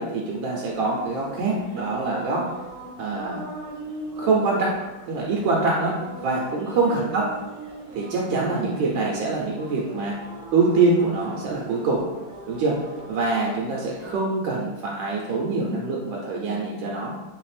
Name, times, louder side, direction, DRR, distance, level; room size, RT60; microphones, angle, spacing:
voice 1, 0.0-2.4 3.0-3.4 4.2-4.7 5.1-7.2 7.9-10.1 10.5-12.0 12.5-12.8 13.1-17.1, right 3 dB, 80° right, -3 dB, 1.4 m, -24 dB
sound 1, 0.7-14.2, right 2 dB, 60° right, 1.0 m, -41 dB
3.3 x 3.2 x 3.2 m, 1.1 s
omnidirectional pair, 2.1 m